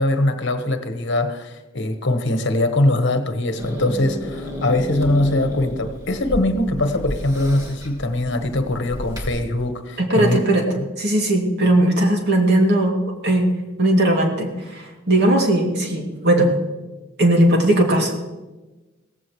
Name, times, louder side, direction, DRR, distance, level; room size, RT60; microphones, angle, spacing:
voice 1, 0.0-10.4 10.8-10.9, left 1 dB, 60° left, 7 dB, 1.2 m, -22 dB
Growling / Hiss, 3.6-9.3, left 1 dB, 20° right, 2.6 m, -31 dB
voice 2, 10.0-10.7 11.0-13.0 13.2-13.5 13.8-16.5 17.2-18.2, right 1 dB, 55° right, 1 dB, 2.4 m, -18 dB
17.0 x 15.0 x 3.2 m, 1.1 s
head